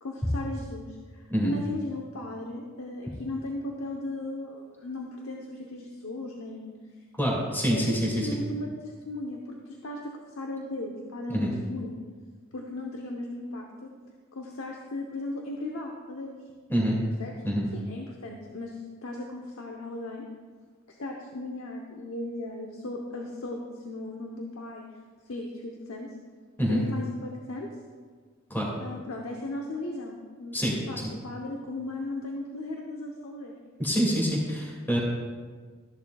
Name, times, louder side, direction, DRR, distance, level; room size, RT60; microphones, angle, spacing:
voice 1, 0.0-6.7 7.7-10.0 10.4-12.0 12.5-13.9 14.3-16.4 17.2-17.3 17.7-20.2 20.9-24.8 25.3-26.1 26.7-27.7 28.8-33.6, left 2 dB, 80° left, 0 dB, 0.9 m, -36 dB
voice 2, 7.2-8.3 11.3-11.5 16.7-17.0 17.4-17.7 26.6-26.8 28.5-28.7 30.5-31.1 33.8-35.0, equal, 10° left, -3 dB, 2.3 m, -26 dB
14.0 x 10.5 x 2.4 m, 1.6 s
head